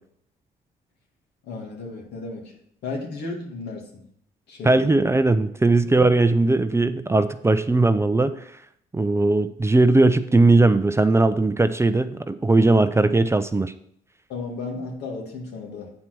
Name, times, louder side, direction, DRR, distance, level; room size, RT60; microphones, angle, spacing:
voice 1, 1.4-2.6 2.8-4.0 4.5-4.9 6.0-6.1 14.3-15.9, left 3 dB, 80° left, 0 dB, 2.3 m, -34 dB
voice 2, 4.6-8.4 8.9-13.7, right 2 dB, 15° right, 11 dB, 0.5 m, -19 dB
8.5 x 4.5 x 6.0 m, 0.69 s
cardioid pair, 85°, 17 cm